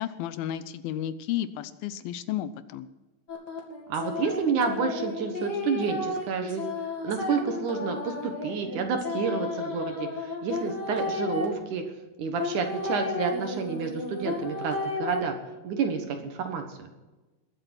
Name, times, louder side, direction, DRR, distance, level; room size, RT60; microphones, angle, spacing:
voice 1, 0.0-2.9, left 11 dB, 80° left, 14 dB, 2.4 m, -32 dB
sound 1, 3.3-11.4 12.4-15.2, left 3 dB, 30° left, 2.3 m, -33 dB
voice 2, 3.9-6.6 7.0-11.8 12.2-15.4 15.6-16.9, right 5 dB, 60° right, 5 dB, 2.5 m, -29 dB
21.5 x 7.8 x 6.1 m, 1.2 s
omnidirectional pair, 4.3 m